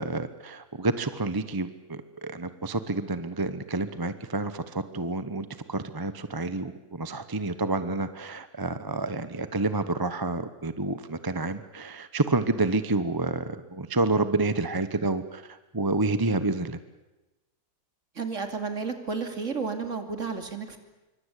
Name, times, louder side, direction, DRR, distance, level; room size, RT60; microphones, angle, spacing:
voice 1, 0.0-16.8, right 2 dB, 15° right, 12 dB, 0.8 m, -29 dB
voice 2, 18.1-20.8, right 4 dB, 45° right, 7 dB, 3.0 m, -32 dB
26.0 x 24.0 x 8.3 m, 1.1 s
omnidirectional pair, 1.8 m